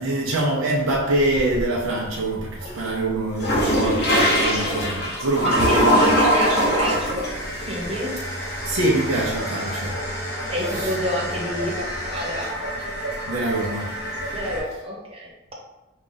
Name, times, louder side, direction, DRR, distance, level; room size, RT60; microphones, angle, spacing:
voice 1, 0.0-6.1 8.6-10.0 10.7-10.9 13.3-14.0, right 1 dB, 80° right, 0.7 m, -24 dB
sound 1, 0.9-1.8 2.3-14.6, equal, 50° left, 1.3 m, -24 dB
voice 2, 5.4-7.3 7.7-8.1 10.5-11.8 12.1-12.5 14.3-15.3, equal, 25° right, 1.0 m, -28 dB
sound 2, 7.2-12.7, equal, 15° left, 1.1 m, -34 dB
5.0 x 2.4 x 3.9 m
head